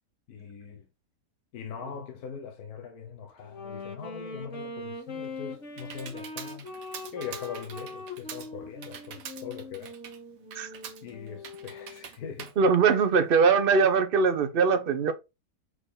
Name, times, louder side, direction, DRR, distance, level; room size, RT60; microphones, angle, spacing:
voice 1, 0.3-0.9 1.5-6.7 7.1-10.0 11.0-12.5, left 7 dB, 65° left, 1.3 m, -41 dB
Wind instrument woodwind instrument, 3.4-12.1, left 2 dB, 45° left, 1.8 m, -42 dB
Computer keyboard, 5.0-13.5, right 8 dB, 75° right, 1.5 m, -46 dB
voice 2, 12.6-15.1, right 5 dB, 50° right, 0.7 m, -22 dB
6.2 x 4.0 x 3.8 m
omnidirectional pair, 1.9 m